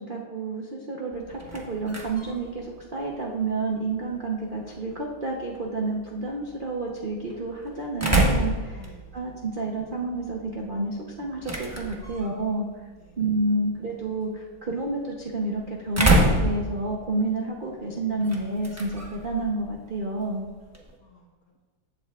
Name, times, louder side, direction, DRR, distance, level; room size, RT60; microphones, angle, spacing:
voice 1, 0.0-8.8 9.1-12.7 13.2-20.5, right 2 dB, 80° right, -1 dB, 0.4 m, -29 dB
sound 1, 1.1-21.0, right 1 dB, 20° right, 0.5 m, -30 dB
voice 2, 8.7-9.4 13.0-13.2 14.1-14.2 20.6-20.7 21.0-21.6, left 1 dB, 50° left, -1 dB, 1.4 m, -53 dB
14.5 x 8.0 x 2.4 m, 1.4 s
omnidirectional pair, 2.3 m